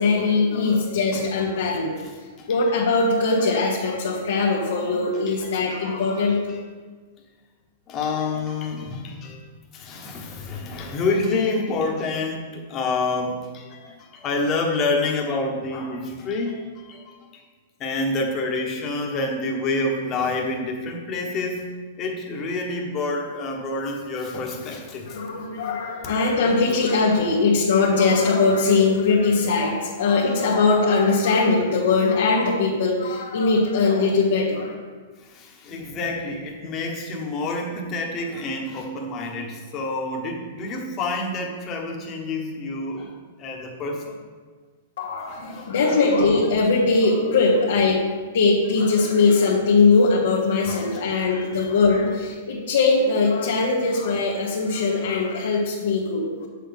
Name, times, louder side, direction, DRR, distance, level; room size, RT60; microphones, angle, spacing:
voice 1, 0.0-2.0 2.5-6.4 25.1-34.7 45.0-48.1 48.3-56.5, left 3 dB, 80° left, -4 dB, 1.2 m, -21 dB
voice 2, 5.3-6.6 7.9-9.4 9.7-17.4 17.8-21.6 22.0-25.2 35.2-44.2 45.3-46.0 50.7-50.9, left 3 dB, 30° left, 1 dB, 1.2 m, -28 dB
7.4 x 6.4 x 3.6 m, 1.5 s
hypercardioid pair, 135°, 0 cm